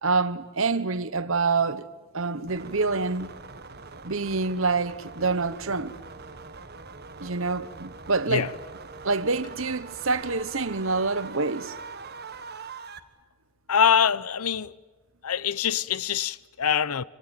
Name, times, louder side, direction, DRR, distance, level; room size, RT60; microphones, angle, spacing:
voice 1, 0.0-1.9 2.1-3.3 4.0-6.0 7.2-8.5 9.0-11.7, right 4 dB, 65° right, 1.2 m, -26 dB
sound 1, 2.5-13.0, right 4 dB, 45° right, 1.6 m, -43 dB
voice 2, 13.7-14.7 15.2-17.0, left 7 dB, 90° left, 0.8 m, -24 dB
26.0 x 25.5 x 9.1 m
head